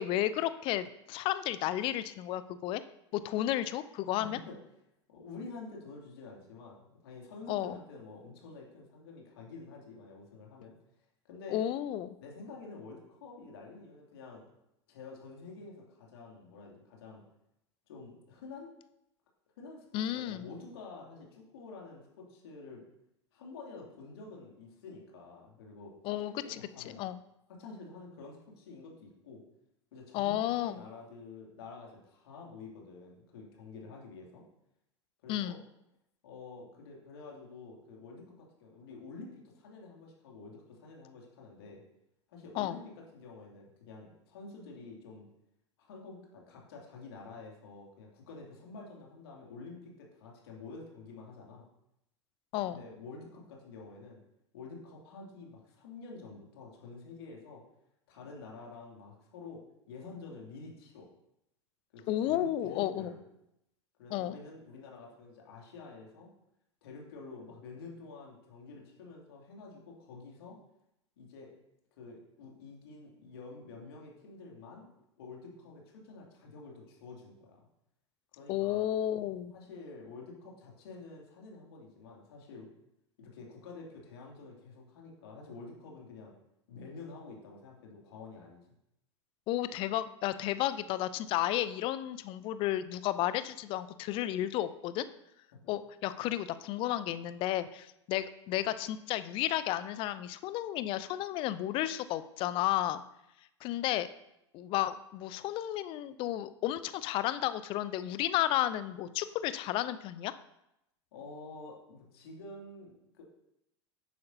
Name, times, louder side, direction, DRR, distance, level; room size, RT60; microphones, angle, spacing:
voice 1, 0.0-2.8 3.1-4.4 7.5-7.8 11.5-12.2 19.9-20.4 26.0-26.4 27.0-27.2 30.1-30.8 35.3-35.6 42.5-42.8 52.5-52.8 62.1-63.1 64.1-64.4 78.5-79.5 89.5-95.1 95.7-103.0 103.6-104.1 104.5-110.3, left 13 dB, 35° left, 14 dB, 0.5 m, -32 dB
voice 2, 4.2-4.6 5.1-10.7 11.2-11.6 12.2-14.5 14.9-17.2 17.9-18.7 19.6-22.8 23.3-25.9 26.4-27.0 27.5-29.4 29.9-34.4 35.2-35.6 36.2-41.8 42.3-42.8 43.1-45.3 45.8-51.7 52.6-54.2 54.5-57.6 58.1-61.1 61.9-63.2 64.0-66.3 66.8-70.6 71.2-71.5 71.9-74.9 75.2-77.6 78.4-78.8 79.5-82.7 83.2-86.3 86.7-88.6 95.5-95.7 111.1-113.2, left 3 dB, 55° left, -1 dB, 2.6 m, -48 dB
10.5 x 9.4 x 2.7 m, 0.84 s
figure-of-eight pair, 85°, 15 cm